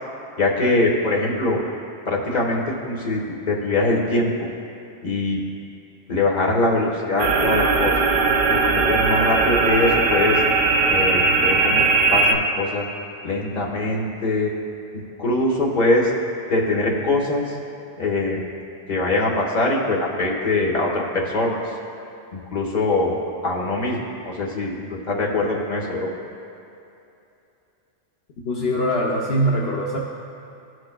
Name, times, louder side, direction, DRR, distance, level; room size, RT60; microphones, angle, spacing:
voice 1, 0.4-1.6 2.1-3.2 3.5-4.5 5.0-5.4 6.1-7.9 8.5-10.4 10.9-12.8 13.2-14.5 15.2-16.1 16.5-17.4 18.0-18.4 18.9-21.6 22.3-23.2 23.4-26.1, left 2 dB, 45° left, -2 dB, 1.3 m, -22 dB
sound 1, 7.2-12.3, right 4 dB, 65° right, 0.9 m, -19 dB
voice 2, 28.4-30.0, equal, 70° left, -2 dB, 1.0 m, -22 dB
16.0 x 6.4 x 2.2 m, 2.7 s
omnidirectional pair, 1.1 m